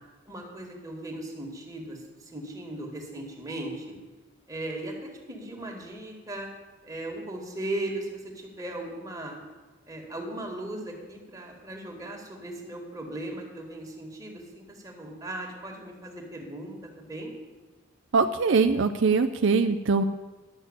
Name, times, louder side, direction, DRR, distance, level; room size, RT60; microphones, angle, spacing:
voice 1, 0.3-2.0 2.3-3.9 4.5-6.5 6.8-9.4 9.9-17.3, right 1 dB, 20° right, 0 dB, 2.1 m, -37 dB
voice 2, 18.1-20.0, right 4 dB, 65° right, 7 dB, 0.5 m, -22 dB
11.5 x 6.6 x 8.1 m, 1.3 s
head